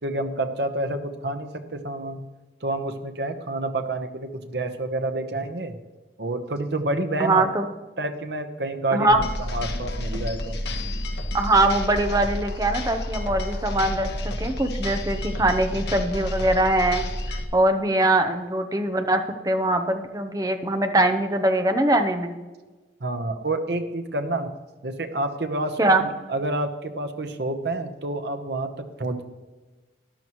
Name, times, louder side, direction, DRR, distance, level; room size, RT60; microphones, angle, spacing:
voice 1, 0.0-2.2 2.6-5.8 6.2-7.4 8.0-10.6 23.0-24.5 24.8-25.8 26.3-29.2, right 2 dB, 75° right, 7 dB, 1.0 m, -28 dB
voice 2, 7.2-7.7 8.9-9.2 11.3-17.0 17.3-22.4 25.8-26.0, right 1 dB, 20° right, 7 dB, 0.8 m, -22 dB
sound 1, 9.1-17.4, left 1 dB, 70° left, 1.3 m, -30 dB
13.5 x 11.0 x 3.1 m, 1.3 s
head